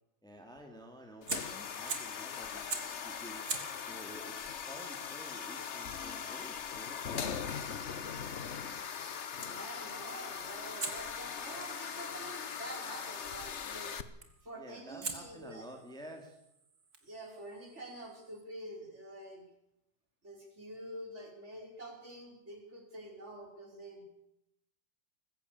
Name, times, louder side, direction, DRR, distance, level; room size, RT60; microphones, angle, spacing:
voice 1, 0.2-3.5 3.8-7.4 14.6-16.4, equal, ahead, 3 dB, 2.4 m, -51 dB
sound 1, 1.2-14.0, left 7 dB, 45° left, 1.2 m, -40 dB
Fire, 1.3-2.2 2.7-3.0 3.4-8.4 10.8-12.9 14.2-14.5 15.0-18.4, right 4 dB, 55° right, 2.8 m, -46 dB
voice 2, 9.4-14.0 14.3-15.7 17.0-19.4 20.2-24.0, right 1 dB, 35° right, 1 dB, 5.2 m, -47 dB
21.0 x 15.5 x 8.4 m, 0.84 s
omnidirectional pair, 2.0 m